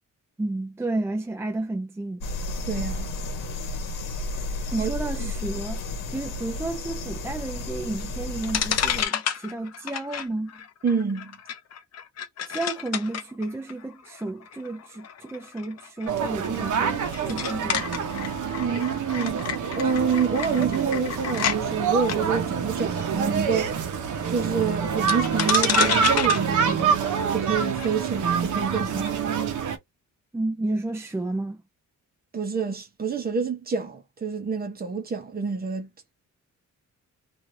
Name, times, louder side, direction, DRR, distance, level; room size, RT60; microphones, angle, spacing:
voice 1, 0.4-2.3 4.7-5.8 6.1-10.6 12.4-17.9 30.3-31.6, right 2 dB, 10° right, 0.4 m, -31 dB
sound 1, 2.2-9.1, left 2 dB, 90° left, 1.0 m, -32 dB
voice 2, 2.6-3.1 4.8-4.9 5.2-5.3 10.8-11.4 18.6-19.5 19.7-23.7 24.3-26.9 27.3-29.5 32.3-36.1, right 5 dB, 30° right, 0.8 m, -28 dB
sound 2, 8.0-8.1 8.4-21.6 22.0-22.2 25.1-27.9, left 9 dB, 55° left, 0.6 m, -30 dB
sound 3, 16.1-29.8, right 7 dB, 70° right, 0.8 m, -26 dB
3.1 x 2.6 x 2.6 m
wide cardioid pair, 150°, 32 cm